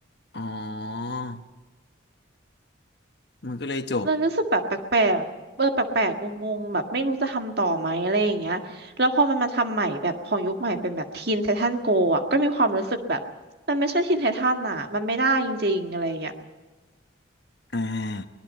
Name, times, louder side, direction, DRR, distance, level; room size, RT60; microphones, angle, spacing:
voice 1, 0.3-1.4 3.4-4.1 17.7-18.3, left 2 dB, 55° left, 8 dB, 1.2 m, -30 dB
voice 2, 4.0-5.2 5.6-13.2 13.7-16.3, right 2 dB, 55° right, 5 dB, 1.8 m, -24 dB
24.0 x 19.5 x 5.6 m, 1.3 s
head